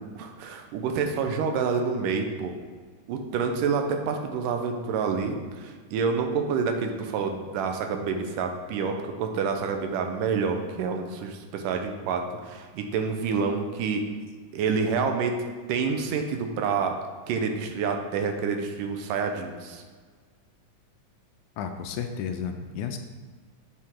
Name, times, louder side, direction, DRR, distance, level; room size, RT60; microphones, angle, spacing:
voice 1, 0.0-2.6 3.1-14.0 14.5-15.4 15.7-17.0 17.3-19.8, right 5 dB, 90° right, 4 dB, 2.5 m, -28 dB
voice 2, 21.6-23.0, left 7 dB, 80° left, 6 dB, 2.0 m, -32 dB
8.6 x 7.9 x 3.7 m, 1.5 s
omnidirectional pair, 3.7 m